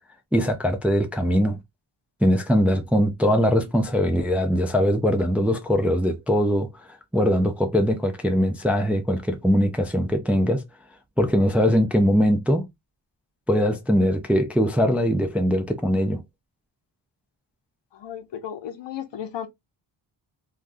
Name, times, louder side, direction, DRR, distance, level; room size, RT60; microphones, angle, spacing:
voice 1, 0.3-1.6 2.2-10.6 11.2-12.7 13.5-16.2, equal, 5° right, 0.3 m, -21 dB
voice 2, 17.9-19.5, left 9 dB, 70° left, 0.7 m, -34 dB
3.4 x 2.3 x 2.5 m
wide cardioid pair, 145°, 46 cm